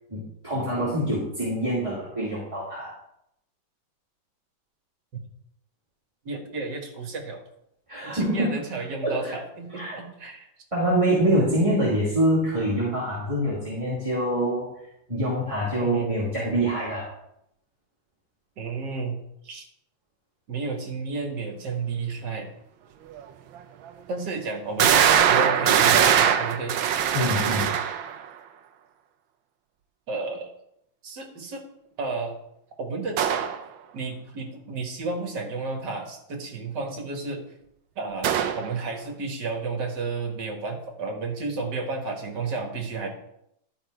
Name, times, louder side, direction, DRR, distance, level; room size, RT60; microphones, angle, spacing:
voice 1, 0.1-2.9 7.9-8.6 9.0-9.3 9.7-9.9 10.7-14.6 15.1-17.1 27.1-27.7, right 1 dB, 15° right, -8 dB, 2.6 m, -25 dB
voice 2, 6.2-7.4 8.0-10.5 15.8-16.2 18.6-19.2 19.4-19.7 20.5-22.5 24.1-26.8 30.1-30.5 31.0-31.6 32.0-32.4 32.8-33.5 33.9-37.4 38.0-43.1, right 4 dB, 60° right, 2 dB, 2.2 m, -32 dB
sound 1, 23.2-23.3 23.9-24.0 24.8-28.2 33.2-33.6 38.2-38.7, right 9 dB, 85° right, 1.5 m, -21 dB
12.5 x 5.2 x 4.8 m, 0.78 s
omnidirectional pair, 2.1 m